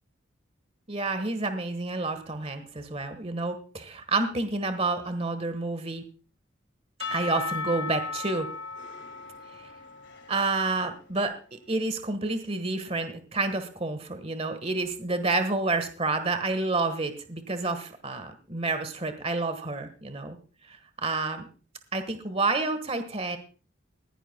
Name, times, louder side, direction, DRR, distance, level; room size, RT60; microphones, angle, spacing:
voice 1, 0.9-6.0 7.1-8.5 9.5-9.7 10.3-20.4 20.7-21.5 21.9-23.4, right 3 dB, 30° right, 9 dB, 1.4 m, -29 dB
Percussion / Church bell, 7.0-11.1, left 4 dB, 65° left, 2.1 m, -36 dB
20.5 x 16.0 x 2.3 m, 0.36 s
head